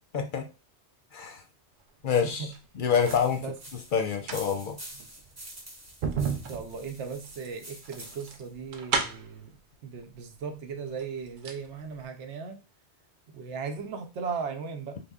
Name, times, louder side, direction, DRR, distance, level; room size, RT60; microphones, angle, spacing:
voice 1, 0.1-0.5 1.1-1.4 2.0-2.5 2.8-3.4 3.9-4.8, left 6 dB, 60° left, 0.6 m, -26 dB
voice 2, 2.2-2.6 3.4-3.6 6.3-12.6 13.3-15.0, right 5 dB, 90° right, 1.0 m, -37 dB
sound 1, 2.3-3.3 4.0-9.4 10.4-10.5 10.9-11.7 12.0-12.1, right 5 dB, 60° right, 0.6 m, -34 dB
sound 2, 3.0-8.5, right 1 dB, 15° right, 0.7 m, -47 dB
3.5 x 2.1 x 3.5 m
omnidirectional pair, 1.1 m